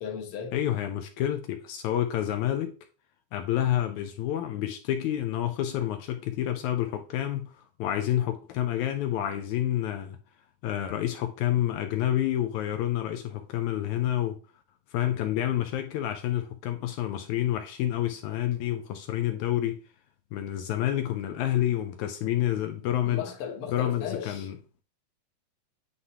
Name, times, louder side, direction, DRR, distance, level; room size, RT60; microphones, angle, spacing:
voice 1, 0.0-0.6 23.1-24.5, left 7 dB, 55° left, 1.7 m, -36 dB
voice 2, 0.5-2.8 3.3-10.2 10.6-14.4 14.9-19.8 20.3-23.3 23.7-24.6, left 12 dB, 80° left, 1.8 m, -29 dB
9.7 x 3.6 x 2.8 m
omnidirectional pair, 3.7 m